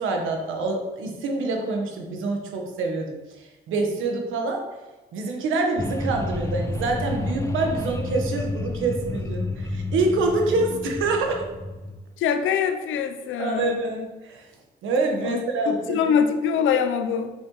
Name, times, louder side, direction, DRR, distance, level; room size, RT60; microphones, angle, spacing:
voice 1, 0.0-4.7 5.1-11.5 13.4-14.5 14.8-16.1, right 3 dB, 85° right, 2 dB, 1.2 m, -26 dB
sound 1, 5.8-12.0, left 2 dB, 15° left, 0.6 m, -30 dB
voice 2, 12.2-13.8 15.2-17.3, left 7 dB, 80° left, 9 dB, 0.6 m, -24 dB
6.0 x 5.9 x 3.1 m, 1.1 s
cardioid pair, 90°, 20 cm